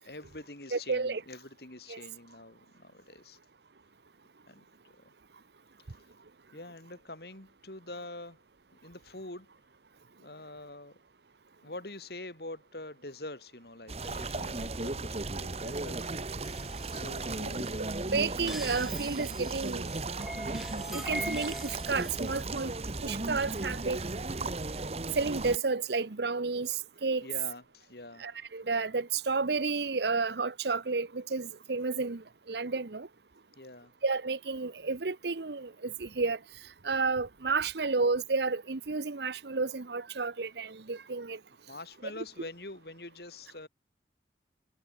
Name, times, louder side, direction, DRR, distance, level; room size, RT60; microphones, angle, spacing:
voice 1, 0.0-3.4 4.5-4.7 5.0-5.1 6.5-8.4 8.8-9.5 10.2-10.9 11.6-16.3 16.9-17.8 27.2-28.2 33.6-33.9 41.7-43.7, left 2 dB, 60° left, 3.7 m, -45 dB
voice 2, 0.7-1.2 1.9-2.0 18.1-19.9 20.9-22.7 23.0-24.0 24.4-24.5 25.2-27.3 28.2-33.1 34.0-36.4 36.8-41.4, right 4 dB, 70° right, 0.9 m, -31 dB
sound 1, 13.9-25.6, right 2 dB, 35° right, 1.2 m, -36 dB
sound 2, 16.4-22.5, equal, ahead, 4.8 m, -43 dB
head